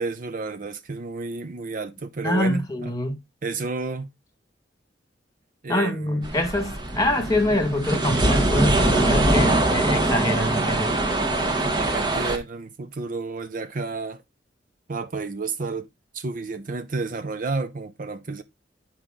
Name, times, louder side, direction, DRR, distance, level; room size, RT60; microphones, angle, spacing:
voice 1, 0.0-2.9 3.4-4.1 5.6-6.3 11.4-14.2 14.9-15.9 16.1-18.4, right 3 dB, 50° right, 0.6 m, -31 dB
voice 2, 2.2-3.2 5.7-10.9, left 1 dB, 20° left, 1.8 m, -25 dB
sound 1, 6.2-12.4, right 2 dB, 25° right, 1.1 m, -22 dB
8.5 x 4.8 x 3.7 m
head